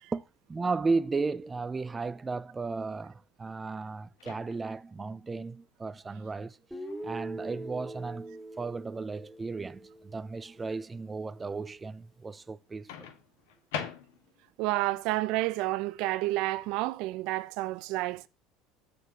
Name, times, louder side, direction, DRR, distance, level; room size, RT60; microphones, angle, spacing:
voice 1, 0.5-6.6 7.0-13.1, right 4 dB, 20° right, 0.4 m, -34 dB
Microwave oven, 4.2-4.9 6.9-7.1 12.9-14.5, left 8 dB, 80° left, 1.7 m, -41 dB
Guitar, 6.7-10.7, right 1 dB, ahead, 3.3 m, -42 dB
voice 2, 14.6-18.3, right 18 dB, 65° right, 0.6 m, -30 dB
14.5 x 5.2 x 3.0 m
supercardioid pair, 95°, 0 cm